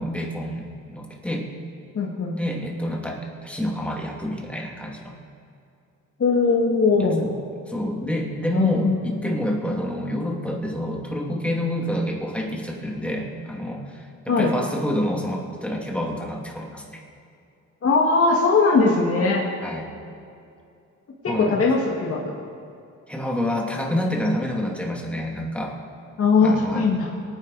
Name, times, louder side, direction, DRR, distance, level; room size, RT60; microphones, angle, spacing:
voice 1, 0.0-1.4 2.4-5.1 7.0-7.4 7.7-17.0 19.6-19.9 21.3-21.6 23.1-25.8 26.4-26.9, equal, 5° left, -1 dB, 2.4 m, -28 dB
voice 2, 2.0-2.3 6.2-7.2 8.5-9.3 14.3-14.5 17.8-19.4 21.2-22.3 26.2-27.1, left 4 dB, 50° left, -3 dB, 2.0 m, -20 dB
23.0 x 9.6 x 4.1 m, 2.5 s
cardioid pair, 90°, 30 cm